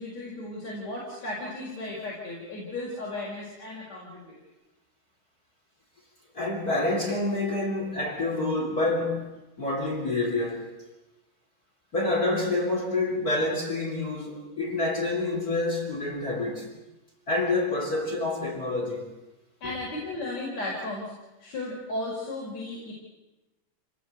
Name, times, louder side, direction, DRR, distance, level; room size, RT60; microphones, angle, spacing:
voice 1, 0.0-4.4 19.6-21.1 21.4-22.9, left 2 dB, 50° left, 6.4 m, -35 dB
voice 2, 6.3-10.7 11.9-16.7 17.3-19.1 19.6-19.7, left 2 dB, 25° left, 3.8 m, -28 dB
28.0 x 19.5 x 8.3 m
omnidirectional pair, 3.9 m